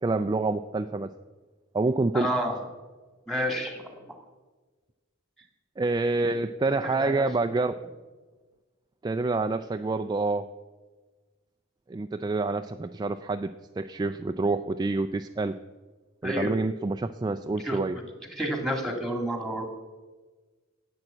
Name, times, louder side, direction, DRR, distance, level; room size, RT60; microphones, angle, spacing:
voice 1, 0.0-1.1 1.7-2.3 5.8-7.7 9.0-10.4 11.9-13.5 13.8-15.5 16.2-18.0, right 3 dB, 20° right, 8 dB, 0.3 m, -27 dB
voice 2, 2.1-2.6 3.3-3.8 6.7-7.5 16.2-16.5 17.6-18.0 18.3-19.7, equal, ahead, 4 dB, 1.9 m, -30 dB
10.5 x 8.7 x 7.7 m, 1.3 s
head